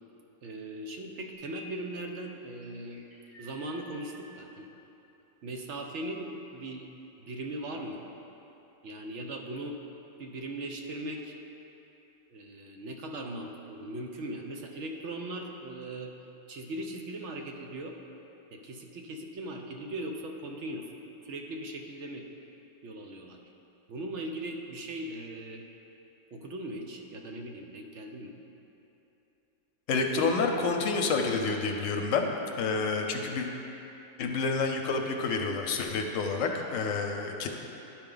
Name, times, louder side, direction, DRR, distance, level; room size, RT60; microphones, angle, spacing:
voice 1, 0.4-3.0 3.4-4.7 5.4-6.9 7.2-8.0 8.8-9.8 10.2-11.3 12.3-16.1 16.5-18.0 18.5-20.9 21.2-22.3 22.8-23.4 23.9-25.7 26.3-28.3, right 1 dB, 60° right, 2 dB, 0.9 m, -39 dB
sound 1, 1.3-1.8 2.2-4.2, equal, 40° right, 1.7 m, -51 dB
voice 2, 29.9-32.3 32.6-33.5 34.2-37.5, left 4 dB, 70° left, 3 dB, 0.9 m, -28 dB
11.5 x 4.4 x 3.8 m, 3.0 s
omnidirectional pair, 1.5 m